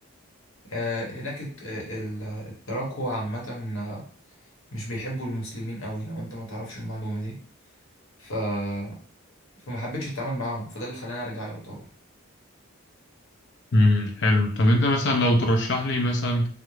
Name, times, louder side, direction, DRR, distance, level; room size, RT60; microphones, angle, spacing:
voice 1, 0.7-4.0 4.7-7.4 8.2-8.9 9.7-11.9, equal, 70° left, -2 dB, 0.9 m, -32 dB
voice 2, 13.7-16.5, left 1 dB, 50° left, 3 dB, 0.5 m, -21 dB
2.4 x 2.0 x 3.0 m, 0.44 s
head